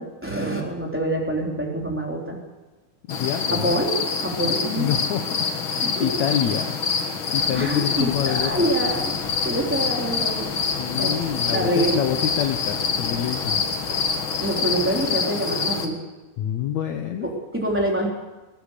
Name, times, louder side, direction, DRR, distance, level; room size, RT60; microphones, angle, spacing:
voice 1, 0.0-2.4 3.5-4.9 5.8-6.1 7.5-9.1 9.4-10.5 11.0-11.2 11.5-12.0 14.4-16.0 17.2-18.1, right 1 dB, 5° right, -1 dB, 3.3 m, -26 dB
voice 2, 3.1-3.8 4.4-6.8 7.3-8.7 10.8-13.6 16.4-17.3, left 10 dB, 70° left, 6 dB, 1.9 m, -27 dB
sound 1, 3.1-15.9, left 5 dB, 50° left, 1.6 m, -26 dB
sound 2, 7.3-15.1, left 2 dB, 30° left, 4.6 m, -40 dB
21.0 x 18.5 x 6.7 m, 1.1 s
omnidirectional pair, 4.4 m